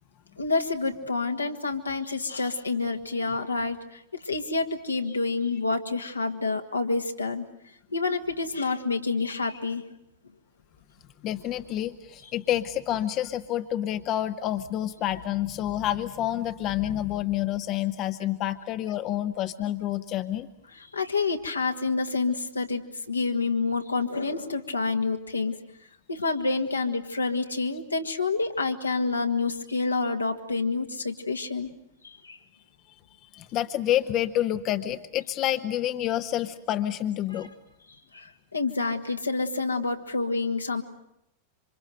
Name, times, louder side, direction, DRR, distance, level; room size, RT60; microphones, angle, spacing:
voice 1, 0.4-7.4 7.9-9.8 20.7-25.6 26.1-31.7 32.0-32.4 37.3-37.5 38.1-40.8, left 3 dB, 80° left, 4 dB, 1.8 m, -28 dB
voice 2, 11.2-20.5 33.2-37.5, left 12 dB, 35° left, 10 dB, 1.0 m, -28 dB
27.5 x 25.5 x 7.8 m, 0.81 s
figure-of-eight pair, 90°, 0 cm